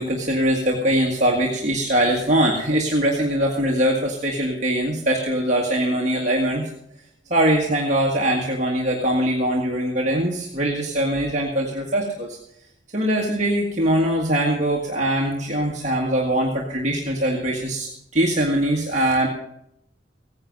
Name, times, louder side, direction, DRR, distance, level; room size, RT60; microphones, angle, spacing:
voice 1, 0.0-6.6 7.3-12.4 12.9-19.3, right 1 dB, 40° right, -1 dB, 1.7 m, -22 dB
16.0 x 9.7 x 5.4 m, 0.77 s
head